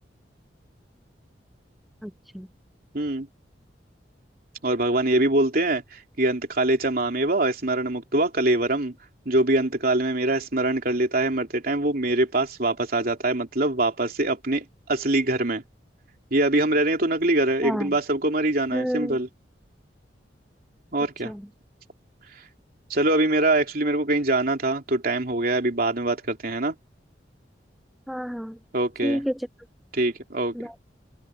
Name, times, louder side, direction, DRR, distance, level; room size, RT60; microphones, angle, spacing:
voice 1, 2.0-2.5 17.6-17.9 18.7-19.2 21.2-21.4 28.1-28.6 29.0-29.5 30.5-30.8, equal, ahead, 0.4 m, -29 dB
voice 2, 2.9-3.3 4.6-8.9 9.2-15.6 16.3-19.3 20.9-21.3 22.9-26.7 28.7-29.2 29.9-30.7, right 2 dB, 55° right, 3.2 m, -23 dB
head